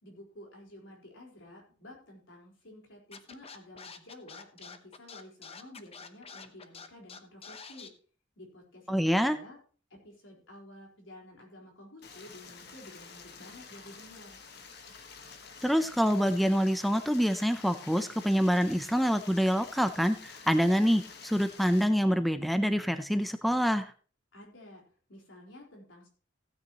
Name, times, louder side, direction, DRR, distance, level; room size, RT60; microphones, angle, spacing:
voice 1, 0.0-7.9 8.4-9.6 10.0-14.4 24.3-24.8 25.1-26.1, left 1 dB, 80° left, 0 dB, 4.3 m, -51 dB
Scratching (performance technique), 3.1-7.9, left 5 dB, 30° left, 0.9 m, -47 dB
voice 2, 8.9-9.4 15.6-23.9, equal, ahead, 10 dB, 0.6 m, -26 dB
Stream, 12.0-21.8, left 5 dB, 60° left, 1.4 m, -49 dB
16.0 x 9.2 x 3.0 m, 0.40 s
head